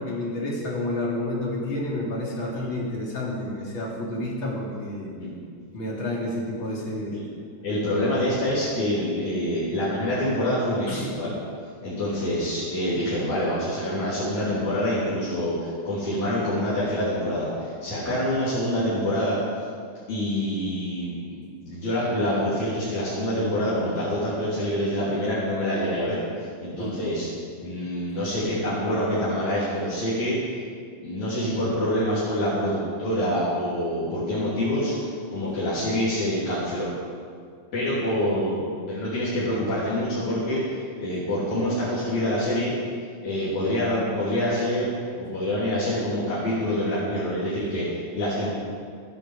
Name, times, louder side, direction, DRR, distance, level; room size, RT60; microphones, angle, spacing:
voice 1, 0.0-5.1 5.7-7.2 10.9-11.1 26.8-27.0, left 1 dB, 40° left, -4 dB, 3.5 m, -30 dB
voice 2, 7.6-11.3 11.8-19.4 20.1-21.4 21.6-26.2 26.6-27.3 27.6-30.4 31.0-34.9 35.3-36.9 37.7-38.6 38.9-42.8 43.2-44.9 45.2-48.5, left 1 dB, 60° left, -10 dB, 4.6 m, -26 dB
15.0 x 9.6 x 7.4 m, 2.1 s
omnidirectional pair, 3.6 m